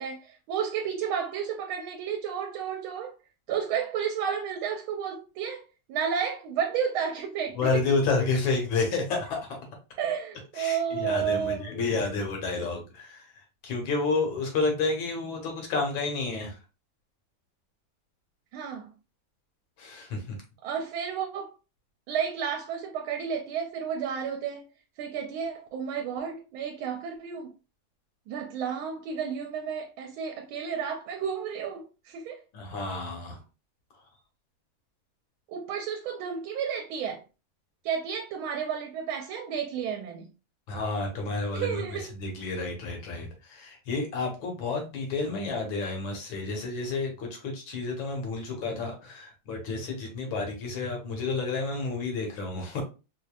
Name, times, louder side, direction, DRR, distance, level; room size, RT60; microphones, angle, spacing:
voice 1, 0.0-3.2 3.5-5.6 5.9-7.6 10.0-11.7 18.5-18.9 20.6-21.5 22.1-24.7 25.0-27.5 28.3-32.4 35.5-37.2 37.8-40.3 41.5-42.1, right 7 dB, 75° right, 1.4 m, -32 dB
voice 2, 7.6-9.6 10.5-16.6 19.8-20.4 32.5-33.4 33.9-34.0 40.7-52.8, left 3 dB, 70° left, 1.8 m, -30 dB
4.8 x 2.6 x 2.3 m
omnidirectional pair, 2.3 m